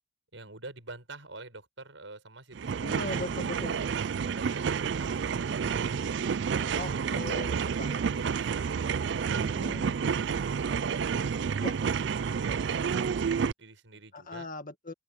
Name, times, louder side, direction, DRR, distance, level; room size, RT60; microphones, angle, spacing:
voice 1, 0.3-2.8 3.3-3.6 4.3-6.4 6.9-10.1 10.8-11.5 13.6-14.5, right 2 dB, 85° right, 5.7 m, -48 dB
sound 1, 2.5-13.5, right 6 dB, 65° right, 0.4 m, -30 dB
voice 2, 2.8-3.8 6.7-8.0 9.4-9.8 11.6-11.8 14.1-14.9, left 2 dB, 45° left, 2.0 m, -39 dB
open air
head